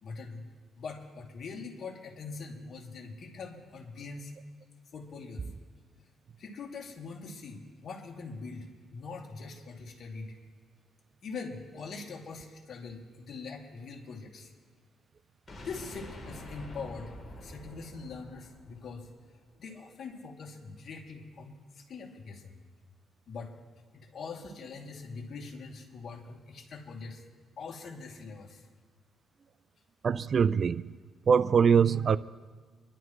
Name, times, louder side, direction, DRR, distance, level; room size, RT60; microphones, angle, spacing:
voice 1, 0.0-0.4 0.8-4.3 4.9-5.5 6.4-10.3 11.2-14.5 15.6-19.1 19.6-22.5 23.3-23.5 23.9-27.2 27.6-28.6, left 4 dB, 55° left, 2.6 m, -43 dB
sound 1, 15.5-19.4, left 1 dB, 30° left, 3.5 m, -46 dB
voice 2, 30.0-30.9 31.3-32.2, right 6 dB, 45° right, 0.4 m, -23 dB
25.5 x 12.0 x 3.2 m
cardioid pair, 90°, 0 cm